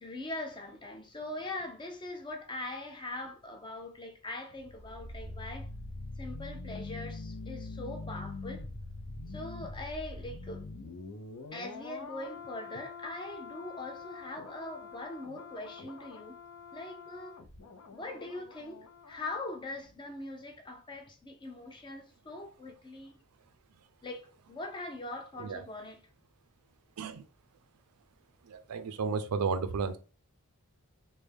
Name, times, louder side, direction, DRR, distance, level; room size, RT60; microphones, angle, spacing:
voice 1, 0.0-5.7 6.2-8.7 9.3-10.7 11.5-16.4 16.7-17.4 17.9-23.2 24.0-26.0, left 2 dB, 20° left, 0.5 m, -42 dB
sound 1, 4.5-19.5 19.8-19.9, left 3 dB, 70° left, 0.6 m, -44 dB
voice 2, 28.4-30.0, right 5 dB, 80° right, 0.4 m, -33 dB
3.3 x 2.1 x 3.4 m
head